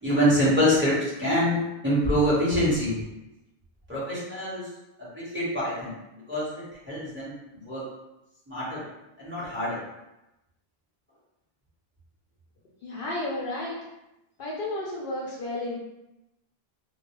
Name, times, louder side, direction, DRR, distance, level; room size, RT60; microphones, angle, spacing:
voice 1, 0.0-3.0 3.9-4.7 5.0-6.0 6.3-7.3 7.6-7.8 8.5-8.8 9.2-9.8, equal, 10° right, -10 dB, 0.9 m, -25 dB
voice 2, 12.8-13.8 14.4-15.7, left 2 dB, 65° left, -5 dB, 0.7 m, -32 dB
2.2 x 2.0 x 2.9 m, 0.93 s
omnidirectional pair, 1.0 m